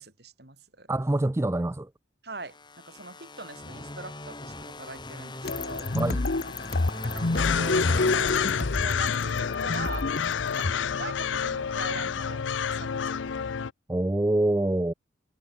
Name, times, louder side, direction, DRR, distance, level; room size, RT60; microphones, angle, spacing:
voice 1, 0.0-0.9 2.2-5.9 7.0-10.1 10.5-13.5, right 2 dB, 55° right, 4.4 m, -42 dB
voice 2, 0.9-1.9 5.9-6.2 13.9-14.9, right 1 dB, 15° right, 0.4 m, -25 dB
sound 1, 2.4-9.3, left 2 dB, 25° left, 2.7 m, -41 dB
sound 2, 5.4-10.7, left 2 dB, 55° left, 0.9 m, -29 dB
sound 3, 7.4-13.7, left 7 dB, 80° left, 0.5 m, -28 dB
head